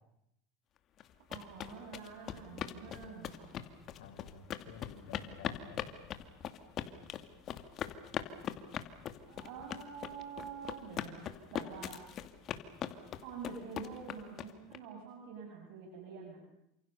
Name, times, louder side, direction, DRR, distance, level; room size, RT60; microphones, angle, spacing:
sound 1, 1.0-14.8, left 10 dB, 40° left, 2.4 m, -41 dB
voice 1, 1.3-3.5 9.3-12.0 13.2-16.4, right 5 dB, 70° right, 1 dB, 7.7 m, -47 dB
voice 2, 4.0-6.0, left 7 dB, 85° left, 4 dB, 6.2 m, -52 dB
29.5 x 27.5 x 7.0 m, 0.83 s
supercardioid pair, 125°, 0 cm